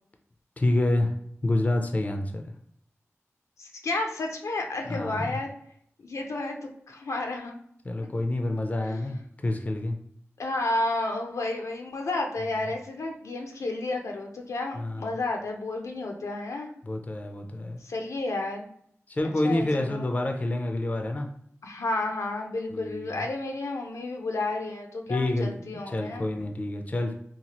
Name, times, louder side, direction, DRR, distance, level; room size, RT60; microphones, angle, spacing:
voice 1, 0.6-1.1 1.4-2.5 4.9-5.4 7.9-10.0 14.8-15.1 16.8-17.8 19.1-21.3 22.7-23.2 25.1-27.1, left 1 dB, 30° left, 4 dB, 0.4 m, -28 dB
voice 2, 3.6-5.5 6.0-6.6 6.9-7.5 8.0-8.1 8.9-9.0 10.4-16.7 17.8-18.7 19.4-20.1 21.6-26.2, left 2 dB, 85° left, 3 dB, 0.5 m, -31 dB
2.8 x 2.3 x 2.9 m, 0.67 s
wide cardioid pair, 70°, 5 cm